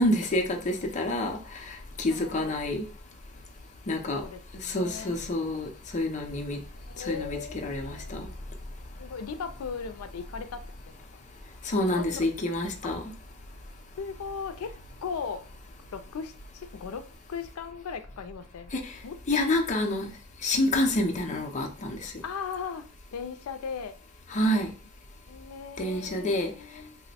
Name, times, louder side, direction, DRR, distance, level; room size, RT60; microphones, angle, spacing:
voice 1, 0.0-1.4 2.0-2.8 3.9-4.2 4.6-6.6 7.1-8.3 11.7-13.0 19.3-20.1 20.4-22.1 24.3-24.7 25.8-26.5, left 1 dB, 35° left, 2 dB, 0.5 m, -27 dB
voice 2, 2.1-2.6 4.1-5.2 6.8-8.4 9.0-11.0 11.9-12.3 12.8-13.0 14.0-14.7 15.0-15.4 15.9-18.7 19.0-19.2 22.2-24.0 25.3-27.0, left 6 dB, 90° left, 10 dB, 0.4 m, -38 dB
2.9 x 2.1 x 4.1 m, 0.38 s
head